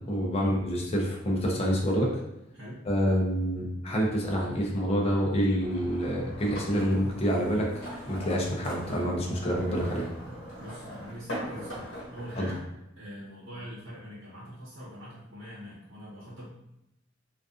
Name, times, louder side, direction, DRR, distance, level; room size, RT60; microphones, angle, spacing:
voice 1, 0.1-2.2 2.8-10.1 12.4-12.5, equal, 30° left, -2 dB, 0.5 m, -27 dB
voice 2, 2.5-2.9 10.6-12.7 13.0-16.5, equal, 75° right, -7 dB, 0.8 m, -43 dB
sound 1, 5.6-12.6, equal, 85° left, 1.0 m, -41 dB
2.4 x 2.3 x 2.4 m, 0.89 s
head